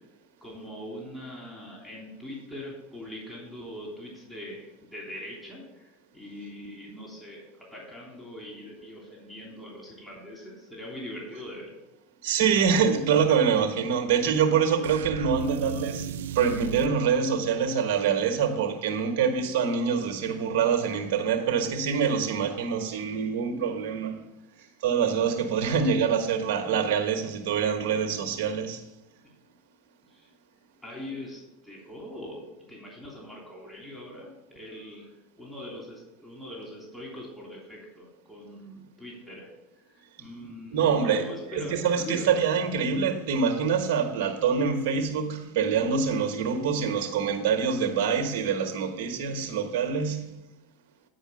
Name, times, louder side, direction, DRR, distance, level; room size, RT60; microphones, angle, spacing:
voice 1, 0.4-11.7 30.1-30.3 30.8-32.4 32.7-39.5 39.8-42.4, left 1 dB, 5° left, 3.2 m, -42 dB
voice 2, 12.2-24.2 24.6-28.8 40.7-50.3, right 6 dB, 70° right, 1.3 m, -25 dB
sound 1, 14.8-17.0, right 9 dB, 85° right, 0.3 m, -35 dB
9.5 x 5.0 x 6.4 m
hypercardioid pair, 100°, 0 cm